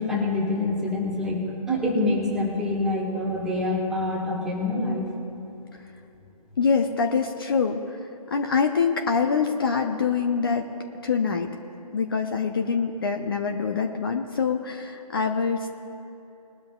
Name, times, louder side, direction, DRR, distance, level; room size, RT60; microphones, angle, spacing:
voice 1, 0.0-5.1, left 2 dB, ahead, -4 dB, 1.4 m, -26 dB
voice 2, 6.6-10.7 11.0-11.5 11.9-15.7, left 5 dB, 35° left, 4 dB, 0.8 m, -25 dB
20.5 x 12.5 x 2.4 m, 2.8 s
figure-of-eight pair, 145°, 20 cm